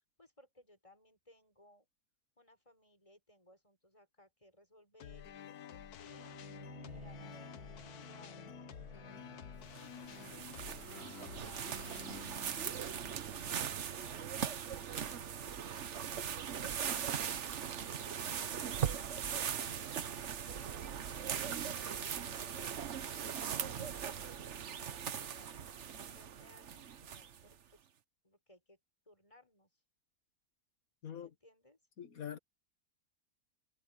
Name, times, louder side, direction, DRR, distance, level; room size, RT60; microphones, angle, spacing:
voice 1, 0.2-1.9 2.4-6.3 6.8-11.8 12.5-18.1 18.6-21.8 22.5-24.5 25.0-27.8 28.2-28.8 29.1-29.8 31.1-31.8, left 1 dB, 20° left, 6.2 m, -63 dB
sound 1, 5.0-14.2, left 9 dB, 85° left, 1.5 m, -51 dB
Bowed string instrument, 6.1-10.6, equal, 25° right, 7.2 m, -53 dB
sound 2, 9.8-27.5, right 8 dB, 55° right, 1.2 m, -40 dB
voice 2, 32.0-32.4, left 9 dB, 65° left, 2.1 m, -43 dB
omnidirectional pair, 1.6 m